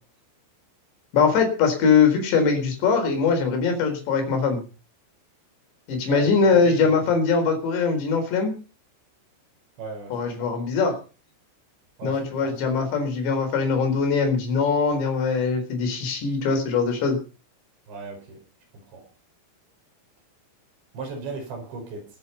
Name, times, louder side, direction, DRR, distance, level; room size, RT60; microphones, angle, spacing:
voice 1, 1.1-4.6 5.9-8.5 10.1-11.0 12.0-17.2, left 5 dB, 60° left, 5 dB, 6.1 m, -22 dB
voice 2, 6.1-6.9 9.8-10.5 12.0-12.6 17.9-18.4 18.9-19.0 20.9-22.1, right 4 dB, 60° right, 4 dB, 7.1 m, -37 dB
20.5 x 9.4 x 5.6 m, 0.36 s
omnidirectional pair, 5.9 m